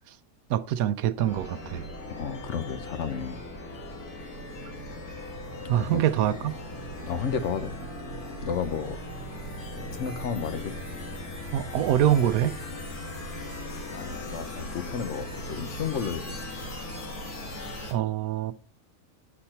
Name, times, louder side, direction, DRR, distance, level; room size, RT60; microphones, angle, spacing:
voice 1, 0.5-1.9 5.7-6.6 11.5-12.6 17.9-18.5, right 11 dB, 80° right, 1.0 m, -25 dB
sound 1, 1.2-17.9, left 1 dB, 85° left, 2.4 m, -38 dB
voice 2, 2.2-3.4 5.8-6.0 7.0-7.8 8.4-9.0 9.9-10.7 13.9-16.4, left 7 dB, 60° left, 1.0 m, -32 dB
9.9 x 4.3 x 4.3 m
omnidirectional pair, 1.5 m